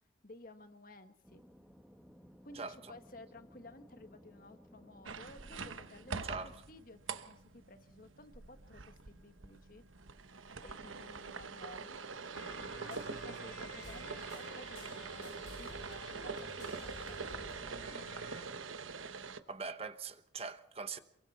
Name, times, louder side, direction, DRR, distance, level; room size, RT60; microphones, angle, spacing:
voice 1, 0.2-1.4 2.4-9.8 10.6-12.0 12.7-17.2, left 2 dB, 45° left, 1.5 m, -55 dB
sound 1, 1.2-6.6, equal, ahead, 1.3 m, -59 dB
voice 2, 2.5-2.9 6.2-6.5 19.5-21.0, right 4 dB, 30° right, 1.0 m, -42 dB
sound 2, 5.0-19.4, right 5 dB, 90° right, 1.1 m, -44 dB
sound 3, 12.3-18.4, left 2 dB, 85° left, 5.9 m, -51 dB
27.5 x 23.0 x 4.2 m
head